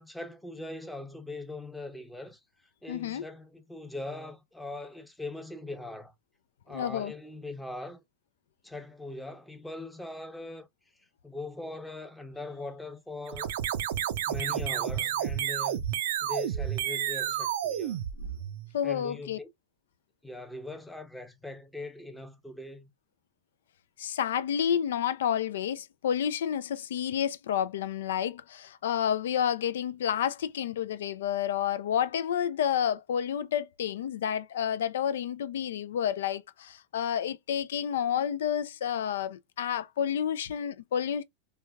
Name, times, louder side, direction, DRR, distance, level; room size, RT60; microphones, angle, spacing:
voice 1, 0.0-2.4 2.8-6.1 6.7-8.0 8.6-10.7 11.2-13.5 14.3-15.9 16.2-18.0 18.8-19.5 20.2-22.9, left 2 dB, 5° left, 0.7 m, -41 dB
voice 2, 2.9-3.2 6.7-7.1 18.2-18.3 18.7-19.4 24.0-41.2, left 9 dB, 85° left, 0.4 m, -30 dB
sound 1, 13.3-18.7, right 10 dB, 75° right, 0.4 m, -31 dB
3.2 x 2.2 x 2.2 m
hypercardioid pair, 110°, 0 cm